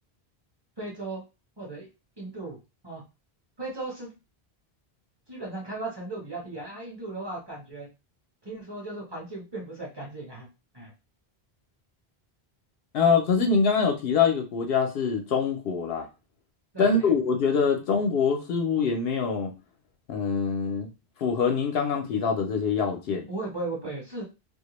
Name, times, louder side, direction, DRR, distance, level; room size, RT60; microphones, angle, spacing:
voice 1, 0.8-1.2 1.6-1.9 2.2-2.6 2.8-3.0 3.6-4.1 5.3-7.9 8.4-10.5 10.7-10.9 16.7-17.1 23.3-24.2, right 2 dB, 25° right, 0.7 m, -36 dB
voice 2, 12.9-16.1 16.8-19.5 20.1-20.9 21.2-23.3, left 5 dB, 70° left, 0.8 m, -24 dB
2.3 x 2.1 x 2.9 m
omnidirectional pair, 1.1 m